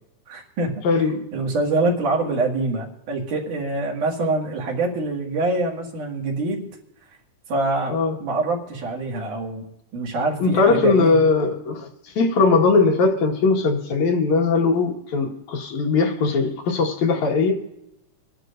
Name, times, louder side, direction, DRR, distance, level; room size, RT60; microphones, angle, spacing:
voice 1, 0.3-0.8 1.3-6.7 7.5-9.6 9.9-11.2, right 2 dB, 70° right, 3.6 m, -25 dB
voice 2, 0.8-1.2 7.9-8.2 10.4-11.9 12.2-17.6, left 4 dB, 60° left, 2.9 m, -19 dB
26.5 x 11.0 x 2.6 m
omnidirectional pair, 3.8 m